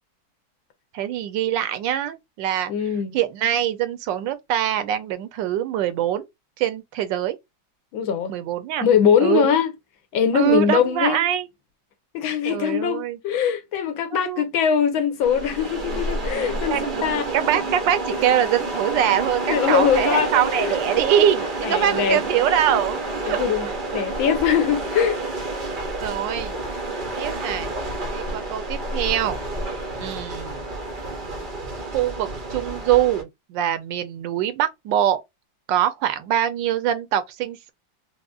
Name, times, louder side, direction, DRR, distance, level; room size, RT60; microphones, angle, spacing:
voice 1, 0.9-2.7 3.1-6.3 6.6-7.4 8.3-8.9 9.2-9.5 10.3-11.5 12.5-13.2 14.1-14.4 16.7-17.1 17.3-24.0 26.0-26.6 27.1-27.7 28.1-29.4 30.0-30.6 31.9-35.2 35.7-37.7, right 11 dB, 75° right, 1.2 m, -23 dB
voice 2, 2.7-3.2 7.9-8.3 8.8-9.7 10.1-11.2 12.1-17.2 19.4-20.8 21.6-22.2 23.3-25.2, left 8 dB, 90° left, 1.7 m, -22 dB
sound 1, 15.2-33.2, right 2 dB, 55° right, 0.5 m, -29 dB
4.8 x 2.1 x 2.3 m
omnidirectional pair, 2.1 m